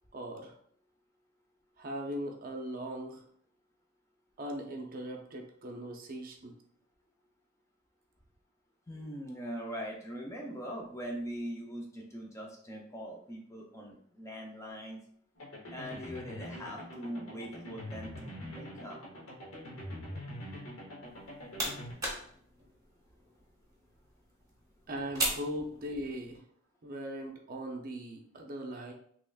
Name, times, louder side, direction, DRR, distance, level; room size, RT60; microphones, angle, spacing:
voice 1, 0.1-0.5 1.8-3.2 4.4-6.5 24.9-26.4 26.8-28.9, equal, 40° right, 2 dB, 0.5 m, -39 dB
voice 2, 8.9-15.0 15.7-19.0, equal, 15° left, 0 dB, 0.4 m, -41 dB
sound 1, 15.4-21.9, left 1 dB, 80° left, 0.9 m, -44 dB
sound 2, 21.0-26.4, right 1 dB, 15° right, 0.8 m, -39 dB
3.4 x 3.0 x 2.3 m, 0.62 s
head